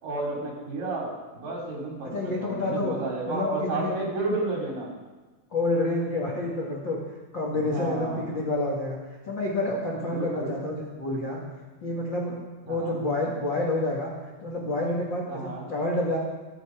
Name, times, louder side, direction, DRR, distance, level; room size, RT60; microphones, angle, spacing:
voice 1, 0.0-4.9 7.5-8.3 10.0-10.5 12.7-13.0 15.3-15.7, right 2 dB, 50° right, -1 dB, 4.1 m, -32 dB
voice 2, 2.1-2.9 3.2-4.0 5.5-7.0 7.3-9.0 9.2-11.4 11.8-14.1 14.4-16.2, left 2 dB, 85° left, -3 dB, 1.0 m, -28 dB
23.5 x 8.3 x 5.0 m, 1.2 s
omnidirectional pair, 5.7 m